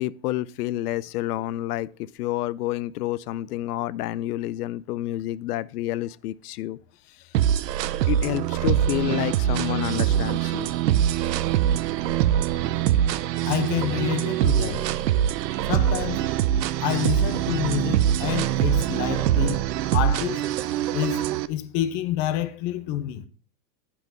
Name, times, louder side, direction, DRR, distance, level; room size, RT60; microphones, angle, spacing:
voice 1, 0.0-6.8 8.1-10.7, left 15 dB, 70° left, 0.6 m, -29 dB
sound 1, 7.3-21.5, right 11 dB, 85° right, 0.7 m, -23 dB
voice 2, 13.5-14.9 15.7-16.3 16.8-20.5 20.9-23.3, left 12 dB, 25° left, 0.3 m, -28 dB
8.3 x 5.8 x 5.1 m
hypercardioid pair, 130°, 48 cm